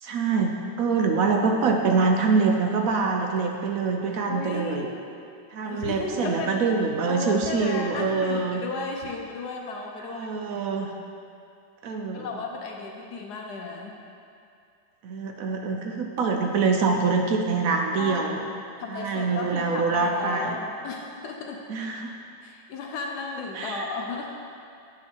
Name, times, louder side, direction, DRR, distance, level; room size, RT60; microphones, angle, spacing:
voice 1, 0.0-4.9 5.5-8.6 10.0-10.9 11.8-12.3 15.0-18.4 18.9-20.5 21.7-22.1 23.5-23.9, right 4 dB, 70° right, 3 dB, 0.8 m, -25 dB
voice 2, 4.3-5.1 5.6-6.7 7.1-10.3 12.1-14.0 18.0-21.6 22.4-24.3, left 4 dB, 70° left, 1 dB, 1.2 m, -34 dB
8.6 x 6.1 x 4.5 m, 2.5 s
omnidirectional pair, 2.0 m